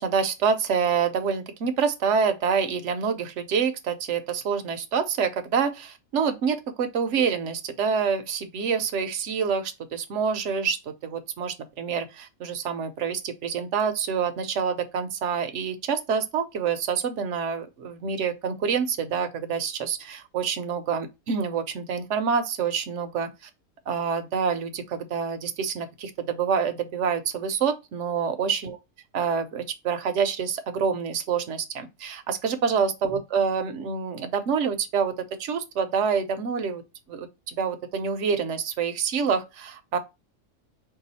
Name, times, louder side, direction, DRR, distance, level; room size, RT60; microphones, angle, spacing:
voice 1, 0.0-23.3 23.9-28.8 29.1-35.1 35.4-36.8 37.1-40.0, right 6 dB, 65° right, 0.9 m, -27 dB
4.7 x 2.3 x 4.0 m
omnidirectional pair, 1.5 m